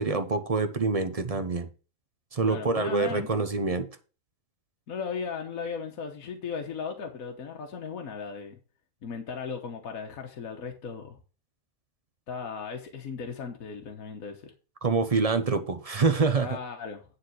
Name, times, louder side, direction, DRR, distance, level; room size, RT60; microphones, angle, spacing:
voice 1, 0.0-1.7 2.3-3.9 14.8-16.6, right 4 dB, 35° right, 0.6 m, -26 dB
voice 2, 2.4-3.4 4.9-8.6 9.0-11.2 12.3-14.5 16.4-17.0, left 6 dB, 70° left, 1.6 m, -36 dB
9.8 x 4.1 x 6.3 m
omnidirectional pair, 1.5 m